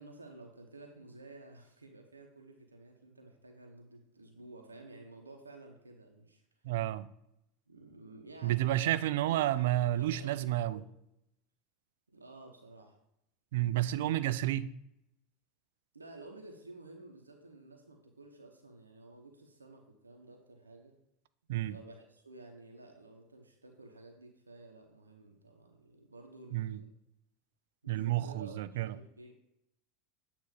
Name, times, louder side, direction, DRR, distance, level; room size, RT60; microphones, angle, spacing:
voice 1, 0.0-6.7 7.7-8.9 9.3-9.4 9.9-10.9 12.1-13.0 15.9-20.9 21.7-26.9 27.8-29.3, right 2 dB, 85° right, 0.7 m, -52 dB
voice 2, 6.6-7.1 8.4-10.8 13.5-14.7 21.5-21.8 26.5-26.8 27.9-29.0, right 14 dB, 65° right, 0.3 m, -30 dB
8.2 x 3.0 x 4.9 m
figure-of-eight pair, 80°, 0 cm